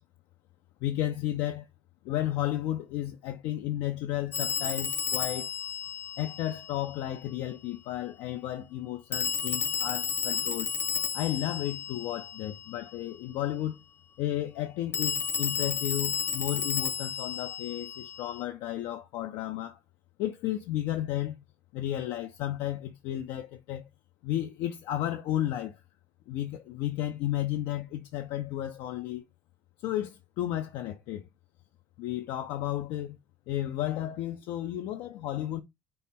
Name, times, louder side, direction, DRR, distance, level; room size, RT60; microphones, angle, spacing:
voice 1, 0.8-1.7 2.0-5.5 6.2-10.7 11.1-13.8 14.2-19.8 20.2-21.4 21.7-23.8 24.2-25.8 26.3-29.2 29.8-31.2 32.0-33.2 33.5-35.6, left 13 dB, 85° left, 0.5 m, -33 dB
Telephone, 4.3-7.0 9.1-12.8 14.9-18.4, left 7 dB, 30° left, 0.4 m, -32 dB
5.5 x 2.1 x 4.2 m
cardioid pair, 125°, 8 cm